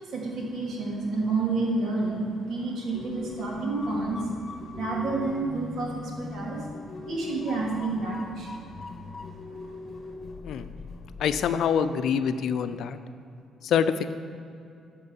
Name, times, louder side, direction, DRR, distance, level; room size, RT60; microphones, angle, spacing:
voice 1, 0.1-4.3 4.7-6.6 7.0-8.7, right 3 dB, 70° right, -3 dB, 2.8 m, -29 dB
sound 1, 2.9-11.5, left 3 dB, 45° left, 0.9 m, -41 dB
voice 2, 11.2-13.0 13.6-14.1, left 7 dB, 70° left, 11 dB, 0.5 m, -25 dB
12.5 x 4.5 x 7.2 m, 2.6 s
supercardioid pair, 75°, 0 cm